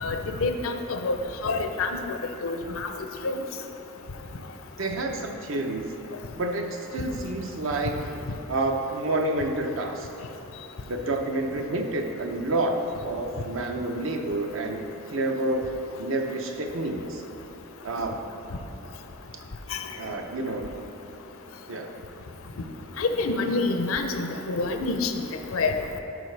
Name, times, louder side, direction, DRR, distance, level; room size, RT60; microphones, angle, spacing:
voice 1, 0.0-1.2 1.4-1.9 2.4-2.9 3.2-3.4 23.0-25.1 25.5-25.8, left 3 dB, 80° left, 6 dB, 0.6 m, -27 dB
voice 2, 4.8-5.9 6.4-8.0 8.5-10.1 10.9-12.8 13.0-15.6 16.0-17.2 17.8-18.2 19.3-19.4 19.9-20.7 21.7-21.9, right 2 dB, 70° right, 3 dB, 0.7 m, -29 dB
11.0 x 4.9 x 3.3 m, 2.9 s
head